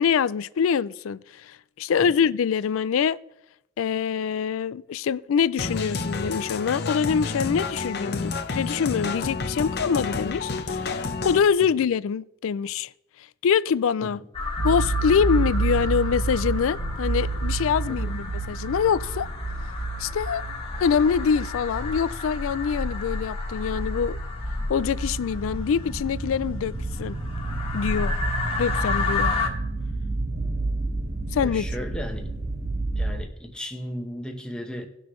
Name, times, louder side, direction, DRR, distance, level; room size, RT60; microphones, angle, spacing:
voice 1, 0.0-3.2 3.8-11.0 11.2-12.9 13.4-14.2 14.6-19.3 20.0-20.4 20.8-24.2 24.7-27.2 27.7-28.2 28.6-29.3 31.3-31.7, left 7 dB, 70° left, 0.3 m, -24 dB
sound 1, 5.6-11.4, left 3 dB, 50° left, 0.8 m, -30 dB
sound 2, 14.3-29.5, left 3 dB, 25° left, 1.6 m, -32 dB
sound 3, 14.6-33.2, right 3 dB, 35° right, 1.6 m, -30 dB
voice 2, 31.4-32.3 33.0-34.9, equal, 5° left, 1.0 m, -36 dB
18.5 x 6.2 x 3.1 m
head